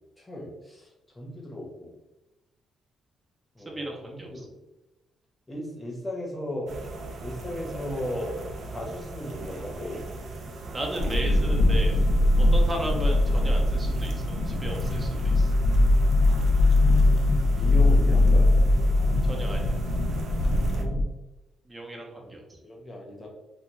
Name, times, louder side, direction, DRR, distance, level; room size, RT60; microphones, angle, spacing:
voice 1, 0.2-0.9 1.1-1.9 3.5-4.5 5.5-6.7 7.2-8.4 8.7-10.0 11.9-12.1 12.9-13.0 17.5-18.5 20.7-21.0 22.3-23.3, left 1 dB, 15° left, -2 dB, 0.9 m, -36 dB
voice 2, 3.7-4.4 10.7-12.0 12.5-15.5 19.2-19.8 21.7-22.6, right 1 dB, 20° right, 0 dB, 0.7 m, -35 dB
sound 1, 6.7-20.8, right 2 dB, 60° right, 0.4 m, -39 dB
sound 2, 11.0-21.1, left 2 dB, 70° left, 0.3 m, -21 dB
2.3 x 2.3 x 3.0 m, 1.0 s
cardioid pair, 90°, 0 cm